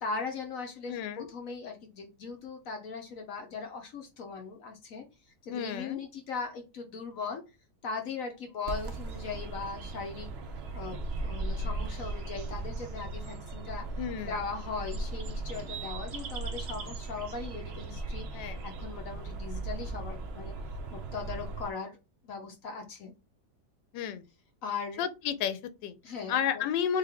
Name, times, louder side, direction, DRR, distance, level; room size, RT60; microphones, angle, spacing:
voice 1, 0.0-5.0 5.5-7.4 7.8-10.3 10.7-13.8 14.3-20.5 20.9-22.0 22.2-23.1 24.6-25.0 26.0-26.6, left 5 dB, 60° left, 1.0 m, -39 dB
voice 2, 0.9-1.3 5.5-6.0 14.0-14.3 18.3-18.6 23.9-24.2 25.0-26.0 26.3-27.0, left 8 dB, 85° left, 1.3 m, -32 dB
sound 1, 8.6-21.7, right 3 dB, 90° right, 0.5 m, -37 dB
3.6 x 3.3 x 3.5 m
omnidirectional pair, 1.9 m